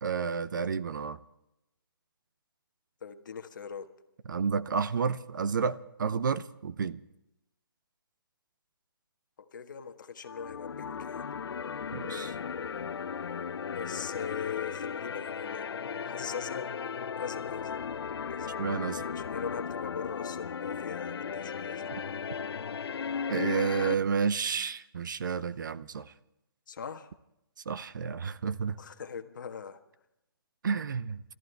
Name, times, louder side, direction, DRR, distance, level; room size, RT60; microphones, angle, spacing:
voice 1, 0.0-1.2 4.3-7.0 11.9-12.3 18.6-19.1 23.3-26.1 27.7-28.8 30.6-31.2, right 6 dB, 55° right, 15 dB, 0.7 m, -31 dB
voice 2, 3.0-3.9 9.4-11.3 13.7-15.7 16.0-16.7 17.2-17.8 18.3-18.5 19.1-21.9 26.7-27.1 28.8-29.8, left 7 dB, 50° left, 8 dB, 1.5 m, -40 dB
sound 1, 10.2-23.9, left 6 dB, 90° left, 0.5 m, -36 dB
30.0 x 14.0 x 3.4 m, 0.85 s
hypercardioid pair, 170°, 13 cm